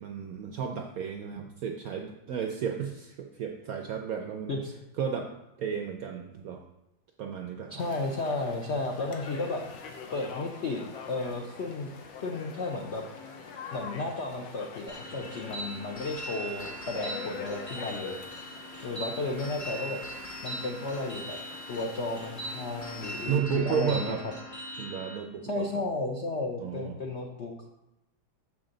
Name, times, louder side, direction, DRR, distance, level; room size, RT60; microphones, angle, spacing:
voice 1, 0.0-4.5 5.0-5.3 5.6-6.6 7.2-7.8 23.3-24.2 24.8-25.7 26.6-27.0, right 8 dB, 75° right, 3 dB, 0.8 m, -33 dB
voice 2, 7.7-9.6 10.1-10.8 11.1-11.9 12.2-13.0 13.7-18.2 18.8-20.0 20.4-21.4 21.7-24.3 25.5-27.7, left 2 dB, 70° left, 1 dB, 0.6 m, -33 dB
sound 1, 7.8-23.4, left 5 dB, 90° left, 1.7 m, -45 dB
sound 2, 14.9-25.2, right 1 dB, 20° left, 0.5 m, -40 dB
7.2 x 6.1 x 3.8 m, 0.91 s
omnidirectional pair, 2.1 m